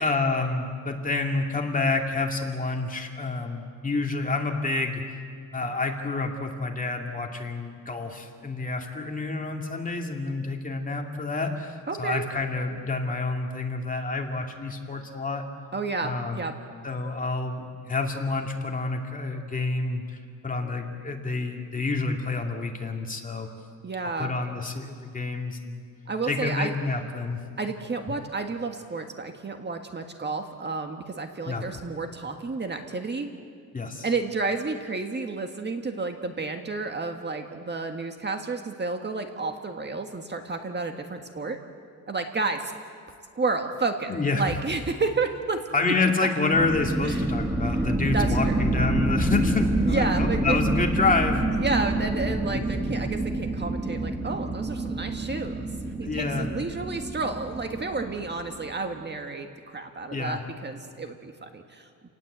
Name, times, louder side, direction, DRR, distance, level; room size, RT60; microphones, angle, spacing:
voice 1, 0.0-5.0 5.5-15.4 16.0-16.4 16.8-20.2 20.4-23.5 24.2-25.8 26.2-27.4 31.5-31.7 33.7-34.1 44.1-44.4 45.7-51.4 52.8-53.0 56.0-56.5 60.1-60.4, left 3 dB, 25° left, 2 dB, 2.5 m, -28 dB
voice 2, 11.9-12.2 15.7-16.6 23.8-24.4 26.1-26.7 27.6-33.3 34.0-41.6 42.1-42.7 43.3-45.9 47.0-47.2 47.7-47.8 48.1-48.6 49.8-50.6 51.6-55.7 56.0-61.9, right 3 dB, 30° right, 5 dB, 1.7 m, -31 dB
sound 1, 46.5-58.8, right 2 dB, 10° right, 1.6 m, -28 dB
29.5 x 19.0 x 8.2 m, 2.2 s
cardioid pair, 130°, 34 cm